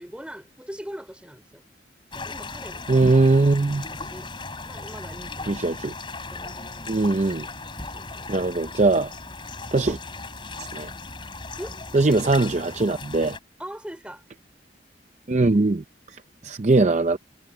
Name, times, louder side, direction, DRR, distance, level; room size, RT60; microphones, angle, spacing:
voice 1, 0.0-1.6 2.1-3.1 3.9-4.3 4.6-5.6 6.3-7.0 7.8-8.5 11.6-11.8 13.6-14.2, equal, 5° right, 5.0 m, -41 dB
sound 1, 2.1-13.4, left 3 dB, 25° left, 3.7 m, -37 dB
voice 2, 2.9-3.8 5.5-5.9 6.9-7.5 8.3-9.1 9.7-10.0 10.6-10.9 11.9-13.4 15.3-17.2, right 3 dB, 40° right, 0.5 m, -21 dB
head